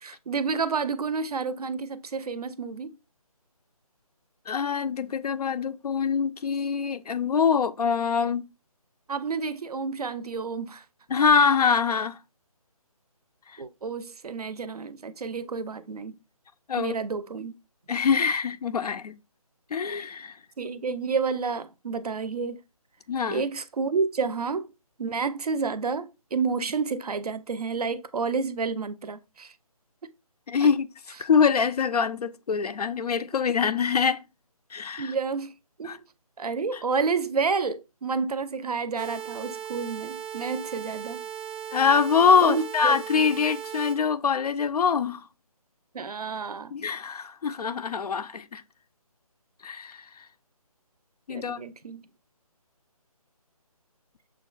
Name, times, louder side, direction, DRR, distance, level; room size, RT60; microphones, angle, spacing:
voice 1, 0.0-3.0 9.1-10.8 13.6-16.2 16.8-17.6 20.6-22.6 23.3-24.7 25.0-29.5 30.0-30.1 30.6-30.7 35.0-35.5 35.8-36.0 36.4-41.2 42.4-43.0 45.9-46.7 51.3-52.0, right 5 dB, 90° right, 0.5 m, -30 dB
voice 2, 4.5-8.5 11.1-12.2 16.7-17.0 17.9-19.2 19.7-20.4 23.1-23.4 30.5-30.9 31.2-34.2 34.7-35.1 35.8-36.0 41.7-45.2 46.7-48.6 49.6-50.0 51.3-51.6, left 6 dB, 90° left, 0.4 m, -24 dB
sound 1, 39.0-44.0, right 9 dB, 20° right, 0.4 m, -37 dB
6.3 x 2.3 x 2.3 m
figure-of-eight pair, 160°, 19 cm